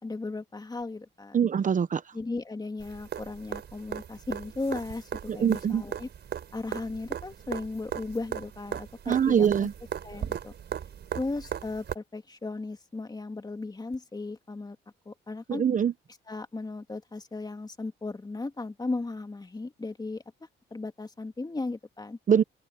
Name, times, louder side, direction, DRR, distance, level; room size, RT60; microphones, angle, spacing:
voice 1, 0.0-1.4 2.1-6.1 6.5-9.7 10.0-10.5 11.2-14.8 15.1-15.6 16.3-20.2 20.7-22.2, left 3 dB, 20° left, 2.3 m, -36 dB
voice 2, 1.3-2.0 5.3-5.8 9.1-9.7 15.5-15.9 22.3-22.4, right 8 dB, 40° right, 0.9 m, -23 dB
sound 1, 2.8-11.9 13.9-14.0, right 9 dB, 60° right, 4.2 m, -38 dB
cardioid pair, 90°, 20 cm